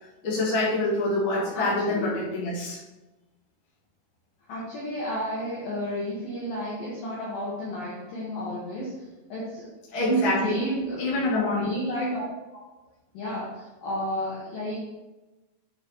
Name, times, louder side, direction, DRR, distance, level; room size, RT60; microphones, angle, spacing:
voice 1, 0.2-2.8 9.9-10.5 11.0-11.7, left 2 dB, 30° left, -9 dB, 3.0 m, -26 dB
voice 2, 1.5-2.2 4.5-9.0 9.3-9.7 10.0-11.0 11.4-12.6 13.1-14.8, right 1 dB, 60° left, -6 dB, 2.7 m, -31 dB
8.8 x 7.6 x 3.1 m, 1.1 s
omnidirectional pair, 5.4 m